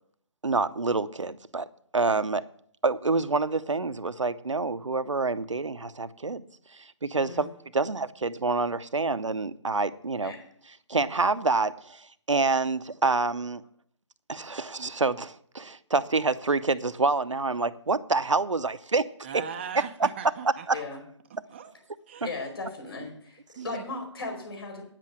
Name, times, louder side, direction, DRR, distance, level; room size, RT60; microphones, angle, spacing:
voice 1, 0.4-1.7 1.9-2.4 2.8-6.4 6.7-7.5 7.7-10.3 10.9-13.6 14.3-19.1 20.7-20.8, right 3 dB, 85° right, 0.7 m, -27 dB
voice 2, 19.2-20.8 21.5-21.7 22.1-22.3 23.6-23.8, right 7 dB, 25° right, 0.6 m, -39 dB
voice 3, 22.2-23.4 23.6-24.8, left 3 dB, 55° left, 4.7 m, -36 dB
9.7 x 7.6 x 7.6 m
figure-of-eight pair, 150°, 15 cm